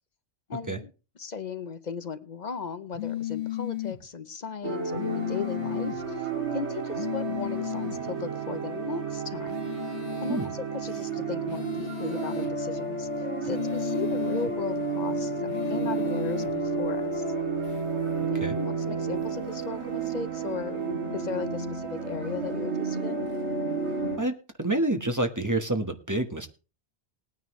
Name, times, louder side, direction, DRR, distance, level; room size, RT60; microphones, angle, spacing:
voice 1, 0.5-0.9 1.2-9.7 10.2-13.1 13.4-17.2 18.3-20.8 21.1-23.3, left 5 dB, 45° left, 12 dB, 0.8 m, -37 dB
sound 1, 2.9-4.0 4.9-6.0 6.9-8.0 9.5-10.5 11.5-12.5 13.5-14.5 15.5-16.5, left 13 dB, 65° left, 1.4 m, -34 dB
sound 2, 4.6-24.2, right 4 dB, 75° right, 2.9 m, -31 dB
voice 2, 24.2-26.5, right 1 dB, 15° right, 6 dB, 1.2 m, -28 dB
19.5 x 9.6 x 3.1 m, 0.34 s
omnidirectional pair, 1.1 m